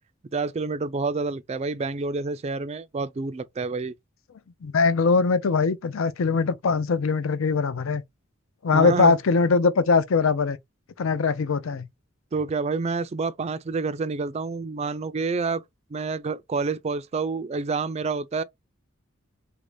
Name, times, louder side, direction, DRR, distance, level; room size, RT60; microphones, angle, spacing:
voice 1, 0.3-3.9 8.7-9.1 12.3-15.6 15.9-18.4, right 4 dB, 30° right, 0.3 m, -28 dB
voice 2, 4.6-8.0 8.6-10.6 11.0-11.9, left 4 dB, 75° left, 0.5 m, -21 dB
3.4 x 2.6 x 3.3 m
head